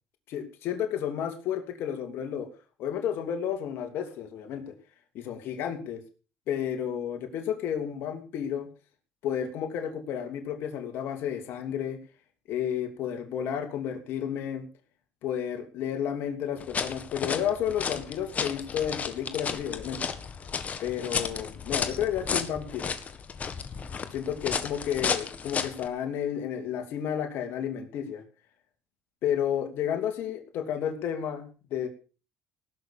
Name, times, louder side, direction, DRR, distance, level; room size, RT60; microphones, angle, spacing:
voice 1, 0.3-2.5 2.8-4.7 5.1-6.0 6.5-8.7 9.2-12.0 12.5-14.6 15.2-20.1 20.8-22.9 24.1-28.2 29.2-31.9, left 9 dB, 65° left, 5 dB, 2.9 m, -31 dB
sound 1, 16.6-25.9, left 6 dB, 35° left, 1.7 m, -33 dB
18.5 x 6.7 x 7.0 m, 0.36 s
supercardioid pair, 95°, 4 cm